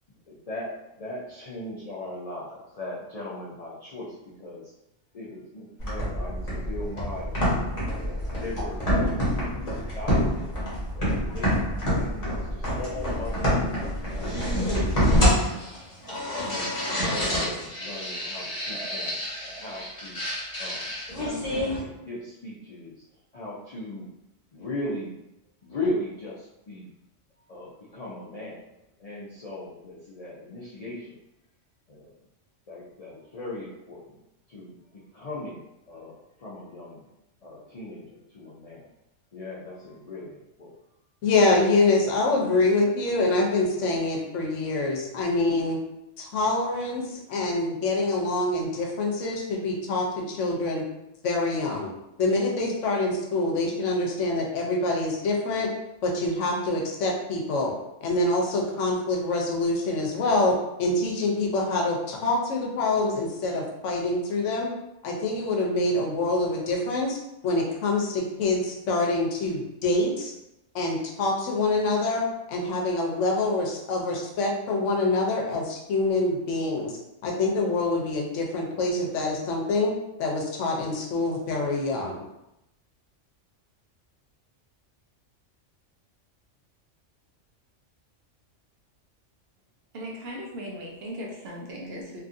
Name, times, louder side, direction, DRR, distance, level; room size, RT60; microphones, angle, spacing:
voice 1, 0.1-0.7 1.0-4.7 5.1-7.5 7.9-10.4 10.9-14.7 16.4-20.2 20.6-21.0 21.3-22.9 23.3-24.1 24.5-25.1 25.6-26.9 27.5-28.6 29.0-31.2 31.9-32.1 32.7-34.2 34.5-37.1 37.4-38.9 39.3-40.9, left 1 dB, 55° left, -6 dB, 0.4 m, -38 dB
sound 1, 5.8-21.8, equal, 30° left, 1.0 m, -27 dB
voice 2, 41.2-45.8 46.2-50.8 51.2-51.9 52.2-55.7 56.0-57.7 58.0-64.7 65.0-67.2 67.4-70.3 70.7-77.0 77.2-79.9 80.2-82.2, left 2 dB, 75° left, 0 dB, 1.0 m, -25 dB
voice 3, 89.9-92.2, equal, 65° right, -2 dB, 0.8 m, -37 dB
2.8 x 2.5 x 2.5 m, 0.89 s
omnidirectional pair, 1.3 m